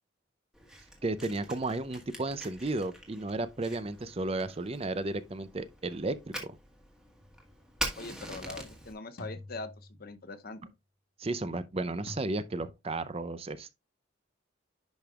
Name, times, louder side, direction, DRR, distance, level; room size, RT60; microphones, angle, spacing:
Fire, 0.5-8.9, right 1 dB, 5° right, 1.4 m, -44 dB
voice 1, 1.0-6.6 11.2-13.7, right 2 dB, 30° right, 0.5 m, -33 dB
sound 1, 7.2-7.6 9.2-10.4 12.1-12.2, left 1 dB, 85° left, 1.5 m, -47 dB
voice 2, 8.0-9.7 10.0-10.6, left 3 dB, 45° left, 0.7 m, -42 dB
10.5 x 5.2 x 2.4 m
head